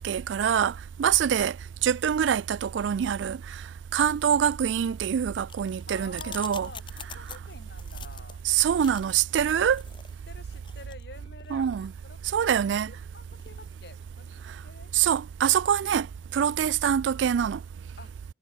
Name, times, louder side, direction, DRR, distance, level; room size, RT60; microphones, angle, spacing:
voice 1, 0.0-1.6 1.8-3.6 3.9-6.7 8.4-9.8 11.5-11.9 12.3-12.9 14.9-16.1 16.3-17.6, right 8 dB, 80° right, 0.3 m, -25 dB
sound 1, 5.5-16.9, left 7 dB, 25° left, 2.3 m, -48 dB
voice 2, 5.9-8.5 10.3-14.9 18.0-18.1, left 3 dB, 60° left, 2.6 m, -48 dB
head